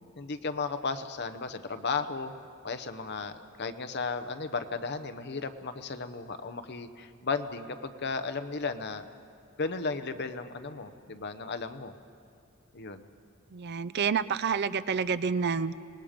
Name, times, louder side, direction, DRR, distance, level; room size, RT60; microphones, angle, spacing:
voice 1, 0.2-2.3 2.6-3.3 3.6-9.1 9.6-11.9 12.7-13.1, left 4 dB, 50° left, 10 dB, 0.9 m, -34 dB
voice 2, 13.5-15.7, right 6 dB, 50° right, 13 dB, 0.5 m, -28 dB
26.5 x 19.5 x 5.2 m, 2.5 s
head